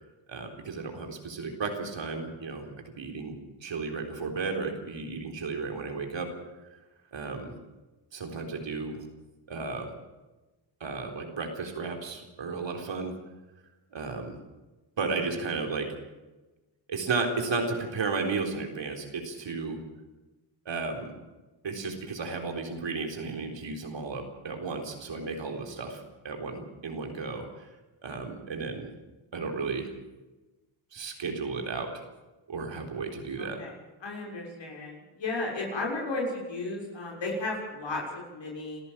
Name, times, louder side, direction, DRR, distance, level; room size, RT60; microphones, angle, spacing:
voice 1, 0.3-6.3 6.7-6.8 7.1-7.5 8.1-9.0 9.5-9.9 10.8-13.2 13.9-14.4 15.0-15.9 16.9-19.8 20.7-21.1 21.6-27.7 28.0-28.9 29.3-29.9 30.9-32.0 32.5-33.6, right 4 dB, 65° right, 4 dB, 4.1 m, -34 dB
voice 2, 33.4-33.7 34.0-38.8, left 2 dB, 65° left, -2 dB, 6.5 m, -34 dB
27.0 x 14.0 x 7.5 m, 1.1 s
cardioid pair, 65°, 47 cm